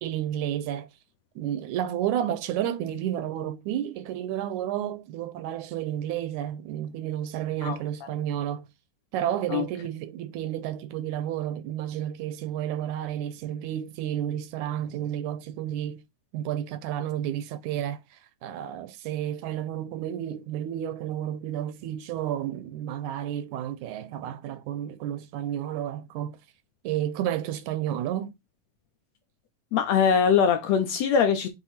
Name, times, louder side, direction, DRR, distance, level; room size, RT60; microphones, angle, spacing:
voice 1, 0.0-0.9 1.4-8.7 9.1-16.0 16.3-26.4 26.8-28.3, right 11 dB, 80° right, 1.9 m, -31 dB
voice 2, 29.7-31.5, left 7 dB, 75° left, 1.7 m, -22 dB
7.9 x 3.0 x 4.2 m
omnidirectional pair, 3.6 m